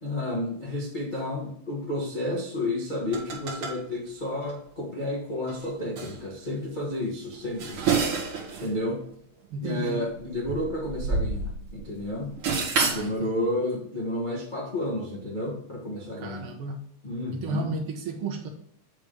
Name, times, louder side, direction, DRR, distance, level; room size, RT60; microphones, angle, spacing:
voice 1, 0.0-7.8 8.6-9.0 9.6-12.3 12.9-16.5 17.0-17.7, left 1 dB, 50° left, -4 dB, 0.5 m, -31 dB
sound 1, 3.1-3.8 4.4-4.5 5.5-5.6 6.0-6.2 7.3-8.7 9.0-9.1 10.1-11.8 12.1-13.1, right 4 dB, 50° right, 2.3 m, -28 dB
voice 2, 9.5-10.0 12.8-13.5 16.2-16.8 17.3-18.5, right 3 dB, 70° right, 3 dB, 1.3 m, -33 dB
8.2 x 3.5 x 5.2 m, 0.66 s
omnidirectional pair, 3.7 m